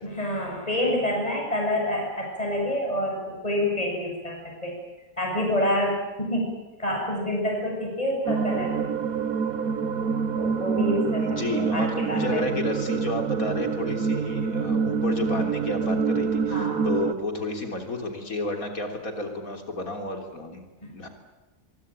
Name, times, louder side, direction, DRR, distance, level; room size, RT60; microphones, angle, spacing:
voice 1, 0.0-4.7 5.2-8.7 10.3-12.4 16.5-16.9 20.8-20.9, left 1 dB, 25° left, -1 dB, 7.6 m, -28 dB
sound 1, 8.2-17.1, right 5 dB, 85° right, 1.6 m, -26 dB
voice 2, 11.2-20.6 20.9-21.1, left 2 dB, 85° left, 4 dB, 4.0 m, -31 dB
24.0 x 23.5 x 9.0 m, 1.1 s
omnidirectional pair, 1.4 m